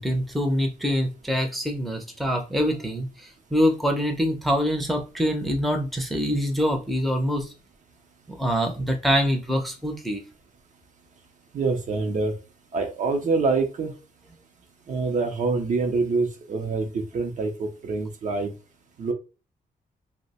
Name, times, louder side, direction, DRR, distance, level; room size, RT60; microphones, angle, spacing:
voice 1, 0.0-7.5 8.3-10.2, equal, ahead, 3 dB, 0.6 m, -25 dB
voice 2, 11.5-12.3 12.7-13.9 14.9-18.5 19.0-19.1, right 4 dB, 55° right, 4 dB, 0.6 m, -25 dB
2.8 x 2.1 x 4.0 m, 0.32 s
wide cardioid pair, 125°, 15 cm